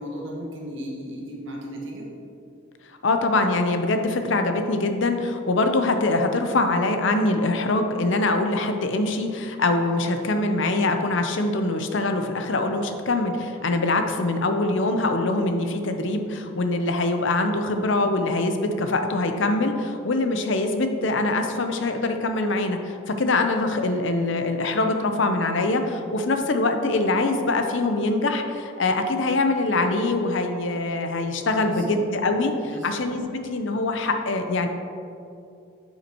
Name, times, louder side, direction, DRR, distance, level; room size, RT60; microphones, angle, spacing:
voice 1, 0.0-2.1 31.7-31.9 32.6-33.0, equal, 65° right, -2 dB, 1.4 m, -35 dB
voice 2, 3.0-34.7, left 2 dB, 60° left, 6 dB, 0.6 m, -23 dB
9.5 x 5.7 x 2.9 m, 2.5 s
head